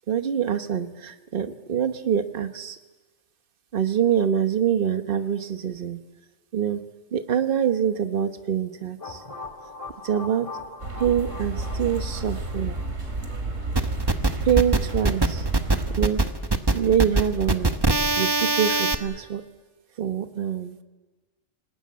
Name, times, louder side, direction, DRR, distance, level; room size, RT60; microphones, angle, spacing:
voice 1, 0.1-2.8 3.7-6.0 6.5-6.8 7.1-9.2 10.0-10.5 11.0-12.8 14.4-15.4 16.0-16.2 16.7-17.7 18.2-19.4 20.0-20.8, right 8 dB, 50° right, 9 dB, 1.2 m, -25 dB
sound 1, 9.0-13.8, left 3 dB, 30° left, 1.8 m, -41 dB
sound 2, 10.8-16.1, right 2 dB, 90° right, 3.1 m, -31 dB
sound 3, 13.8-18.9, right 2 dB, 20° right, 1.0 m, -22 dB
27.0 x 19.5 x 8.5 m, 1.3 s
omnidirectional pair, 1.3 m